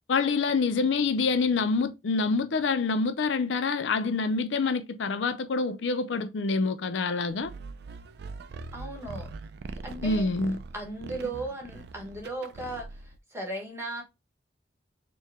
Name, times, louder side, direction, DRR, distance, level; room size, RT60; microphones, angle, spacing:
voice 1, 0.1-7.5 10.0-10.6, left 4 dB, 80° left, 0.5 m, -26 dB
sound 1, 7.4-13.2, right 3 dB, 60° right, 0.4 m, -42 dB
voice 2, 8.7-9.3 9.8-10.3 10.7-14.0, right 2 dB, 15° right, 1.2 m, -36 dB
4.5 x 2.3 x 3.5 m
head